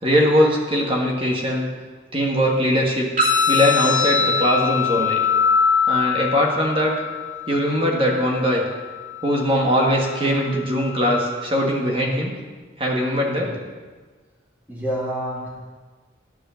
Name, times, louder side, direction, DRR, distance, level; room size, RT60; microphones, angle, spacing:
voice 1, 0.0-1.7 2.1-3.1 3.5-5.2 5.9-6.9 7.5-8.6 9.2-12.3 12.8-13.5, equal, 30° right, 0 dB, 1.5 m, -20 dB
sound 1, 3.2-11.2, left 6 dB, 45° right, 2.7 m, -23 dB
voice 2, 11.9-12.2 13.3-13.6 14.7-15.5, equal, 10° right, -6 dB, 2.6 m, -29 dB
11.5 x 4.9 x 7.0 m, 1.4 s
head